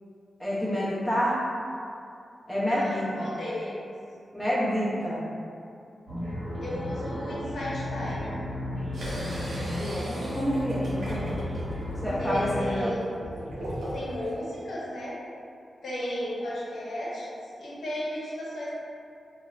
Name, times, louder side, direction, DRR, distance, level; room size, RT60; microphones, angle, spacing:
voice 1, 0.4-1.4 2.5-3.3 4.3-5.2 9.8-11.4 12.0-12.9, equal, 5° right, -9 dB, 0.7 m, -28 dB
voice 2, 2.7-3.9 6.6-8.4 11.0-11.4 12.2-13.3 13.8-15.2 15.8-17.3 17.6-18.7, equal, 75° left, -7 dB, 0.7 m, -35 dB
sound 1, 6.1-12.6, left 1 dB, 35° right, 1.0 m, -34 dB
sound 2, 8.9-14.3, equal, 90° right, 0.5 m, -37 dB
2.8 x 2.1 x 2.4 m, 2.5 s
wide cardioid pair, 130°, 0 cm